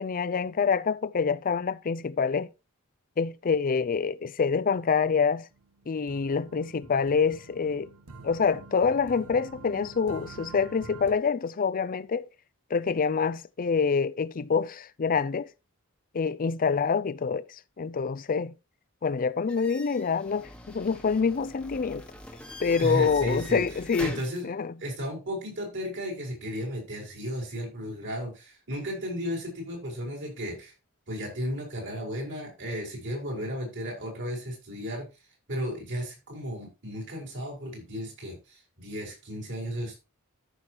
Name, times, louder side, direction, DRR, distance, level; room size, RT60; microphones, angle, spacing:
voice 1, 0.0-2.5 3.2-5.5 5.9-7.9 8.2-12.3 12.7-15.5 16.1-17.4 17.8-18.5 19.0-22.0 22.6-24.7, left 5 dB, 40° left, 0.5 m, -26 dB
sound 1, 5.5-11.1, right 3 dB, 90° right, 1.4 m, -47 dB
sound 2, 19.5-24.4, left 1 dB, 5° left, 1.3 m, -43 dB
voice 2, 22.8-23.6 24.0-24.5 24.8-30.7 31.1-35.1 35.5-40.0, equal, 55° right, 5.2 m, -34 dB
13.5 x 6.3 x 2.9 m
head